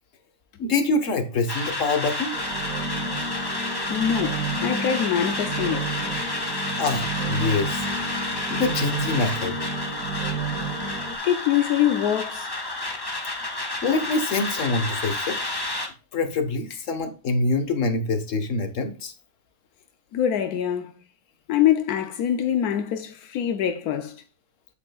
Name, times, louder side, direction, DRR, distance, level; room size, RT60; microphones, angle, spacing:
voice 1, 0.6-2.4 6.8-7.9 8.5-9.6 13.8-15.4 16.1-19.1, left 3 dB, 60° left, 1.7 m, -25 dB
sound 1, 1.5-15.9, left 2 dB, 15° left, 1.3 m, -30 dB
sound 2, 2.3-11.2, right 4 dB, 80° right, 1.8 m, -32 dB
voice 2, 3.9-6.0 11.2-12.5 20.1-20.9 21.5-24.2, left 10 dB, 85° left, 1.3 m, -24 dB
8.6 x 8.5 x 2.3 m
omnidirectional pair, 1.6 m